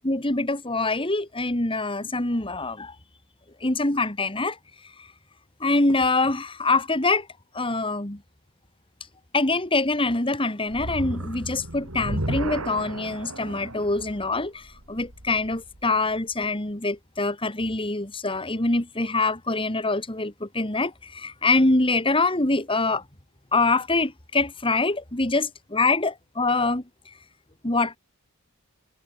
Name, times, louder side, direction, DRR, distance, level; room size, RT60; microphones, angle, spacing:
voice 1, 0.0-3.0 3.6-4.6 5.0-5.1 5.6-7.3 7.5-8.2 9.3-23.0 23.5-26.8 27.6-28.0, left 3 dB, 25° left, 2.1 m, -24 dB
sound 1, 10.7-16.0, right 1 dB, 70° right, 4.0 m, -34 dB
head